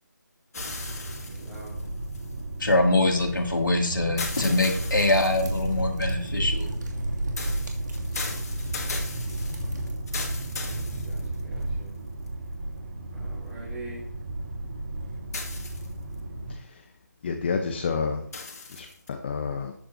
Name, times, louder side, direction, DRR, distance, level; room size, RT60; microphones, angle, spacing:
sound 1, 0.5-2.7 4.2-5.8 7.4-11.6 12.3-12.4 15.3-16.2 18.3-19.1, left 3 dB, 55° left, 2.2 m, -38 dB
sound 2, 0.6-16.5, right 2 dB, 35° right, 3.0 m, -35 dB
voice 1, 1.2-1.7 10.6-11.9 13.1-14.0, right 2 dB, 10° right, -7 dB, 3.6 m, -43 dB
voice 2, 2.6-6.7, left 2 dB, 85° left, 1 dB, 2.7 m, -24 dB
sound 3, 4.7-10.0, right 1 dB, 65° right, 2.7 m, -32 dB
voice 3, 16.5-16.8 17.2-18.2 18.7-19.7, left 5 dB, 35° left, 5 dB, 1.0 m, -30 dB
14.0 x 8.8 x 2.8 m, 0.65 s
figure-of-eight pair, 160°, 10 cm